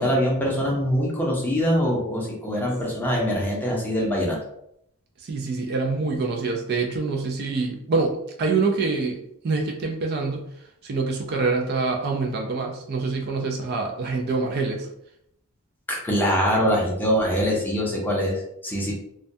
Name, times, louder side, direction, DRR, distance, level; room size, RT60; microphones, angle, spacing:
voice 1, 0.0-4.4 15.9-18.9, equal, 10° left, -3 dB, 0.5 m, -23 dB
voice 2, 5.2-9.2 9.4-10.5 10.8-14.9, right 4 dB, 45° right, 2 dB, 0.3 m, -25 dB
2.2 x 2.2 x 2.6 m, 0.74 s
head